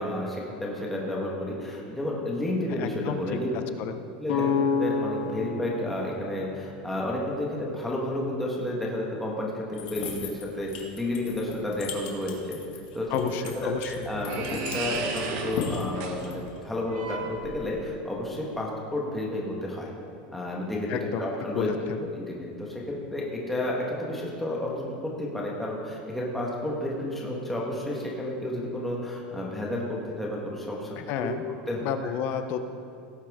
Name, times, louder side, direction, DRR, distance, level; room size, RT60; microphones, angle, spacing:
voice 1, 0.0-3.5 4.2-12.6 12.9-19.9 20.3-21.7 22.2-30.9 31.2-31.3 31.7-31.8, left 1 dB, 5° left, -4 dB, 1.4 m, -31 dB
voice 2, 2.7-3.4 3.8-3.9 13.1-13.9 20.9-21.3 21.5-22.1 31.0-31.4 31.8-32.7, left 7 dB, 45° left, 9 dB, 0.7 m, -31 dB
sound 1, 4.3-8.1, left 5 dB, 90° left, 2.5 m, -30 dB
sound 2, 9.7-16.6, left 5 dB, 60° left, 1.9 m, -37 dB
sound 3, 13.2-18.0, right 4 dB, 50° right, 1.2 m, -36 dB
17.5 x 8.7 x 3.6 m, 2.4 s
supercardioid pair, 165°, 5 cm